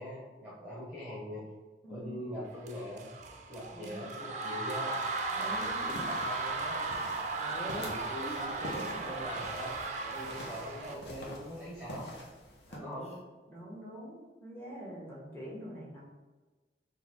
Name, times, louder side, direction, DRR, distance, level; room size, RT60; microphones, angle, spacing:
voice 1, 0.0-1.4 1.9-3.1 3.5-5.0 5.3-6.8 7.6-12.1 12.8-13.1, equal, 10° right, -7 dB, 0.9 m, -42 dB
voice 2, 1.8-2.3 3.7-4.0 5.3-5.8 7.4-7.9 12.7-13.2 13.5-16.0, equal, 15° left, -6 dB, 1.3 m, -44 dB
sound 1, 2.6-10.9, right 3 dB, 40° right, 0.4 m, -36 dB
sound 2, 4.8-4.9 5.8-6.1 8.1-8.5 10.1-10.3 10.8-11.1 12.9-13.3, equal, 35° left, 0.4 m, -50 dB
sound 3, 5.5-12.8, equal, 75° left, 0.9 m, -47 dB
3.9 x 2.7 x 4.3 m, 1.2 s
head